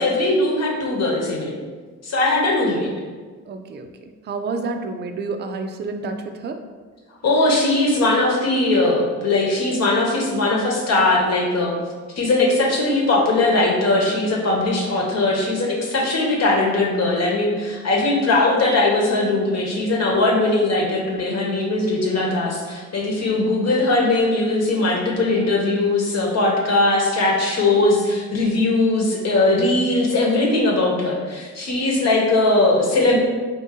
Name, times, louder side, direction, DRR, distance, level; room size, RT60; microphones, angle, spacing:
voice 1, 0.0-1.5 2.0-2.9 7.2-11.7 12.2-33.2, left 2 dB, 60° left, -1 dB, 1.1 m, -20 dB
voice 2, 3.5-3.9 4.2-6.6 20.1-20.3, right 3 dB, 35° right, 6 dB, 0.4 m, -29 dB
4.3 x 2.6 x 3.7 m, 1.4 s
cardioid pair, 90°, 30 cm